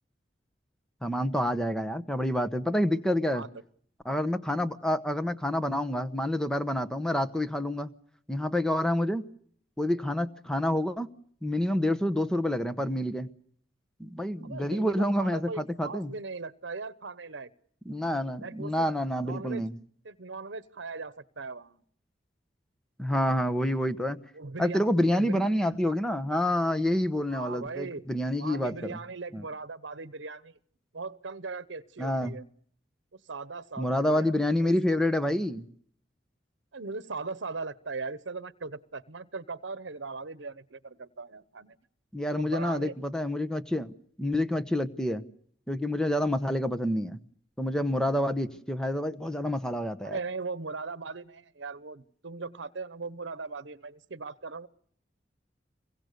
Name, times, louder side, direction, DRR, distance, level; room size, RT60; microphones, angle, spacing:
voice 1, 1.0-3.4 4.0-7.9 8.3-9.3 9.8-11.1 11.4-13.3 14.0-16.1 17.9-19.7 23.0-24.2 24.6-29.0 29.3-29.4 32.0-32.4 33.8-35.7 42.1-43.9 44.2-45.2 45.7-47.2 47.6-50.2, left 1 dB, 5° left, 1.0 m, -28 dB
voice 2, 14.4-17.5 18.4-18.9 19.2-19.6 20.0-21.8 24.3-25.5 27.3-28.0 28.4-30.6 30.9-32.4 33.1-34.3 34.6-34.7 36.7-41.8 42.3-43.0 50.0-54.7, right 4 dB, 80° right, 1.0 m, -39 dB
26.5 x 23.0 x 6.8 m
head